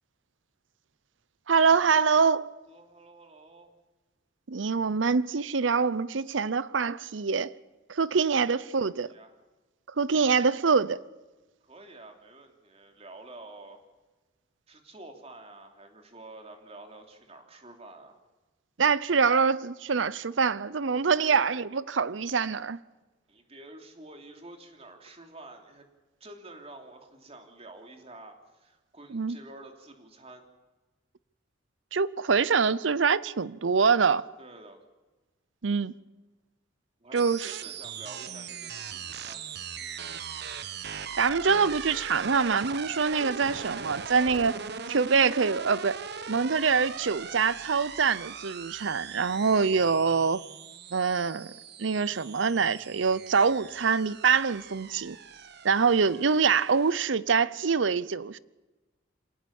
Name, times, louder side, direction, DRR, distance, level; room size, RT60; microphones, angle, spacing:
voice 1, 1.5-2.5 4.5-7.5 7.9-9.1 10.0-11.0 18.8-22.8 29.1-29.4 31.9-34.2 35.6-35.9 37.1-37.5 41.2-44.5 44.9-46.0 46.3-50.4 50.9-51.5 51.8-55.2 55.6-58.4, right 5 dB, 75° right, 0.7 m, -25 dB
voice 2, 2.7-3.7 6.9-7.0 8.1-8.5 8.8-9.4 11.6-13.8 14.7-18.2 21.2-21.5 23.3-25.9 26.2-30.4 34.4-34.8 37.0-39.5, right 2 dB, 35° right, 3.2 m, -49 dB
sound 1, 37.2-57.1, right 6 dB, 60° right, 1.3 m, -40 dB
26.5 x 19.0 x 7.2 m
head